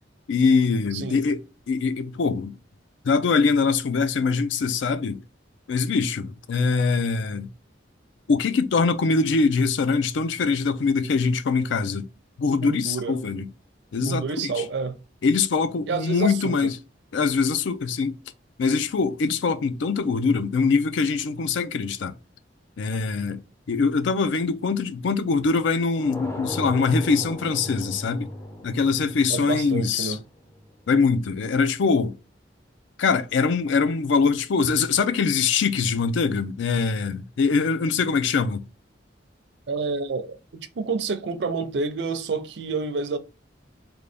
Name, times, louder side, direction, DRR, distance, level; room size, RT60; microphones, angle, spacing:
voice 1, 0.3-1.4 1.7-2.6 3.0-5.2 5.7-7.5 8.3-12.1 12.4-13.5 13.9-14.5 15.2-16.8 17.1-18.2 18.6-22.1 22.8-23.4 23.7-28.3 28.6-30.2 30.9-32.1 33.0-38.6, left 4 dB, 75° left, 0.4 m, -23 dB
voice 2, 0.9-1.2 12.6-13.2 14.0-15.0 15.9-16.7 29.3-30.2 39.7-43.2, right 4 dB, 65° right, 0.5 m, -29 dB
sound 1, 26.0-30.7, left 1 dB, 15° left, 0.4 m, -37 dB
3.7 x 2.2 x 3.3 m
head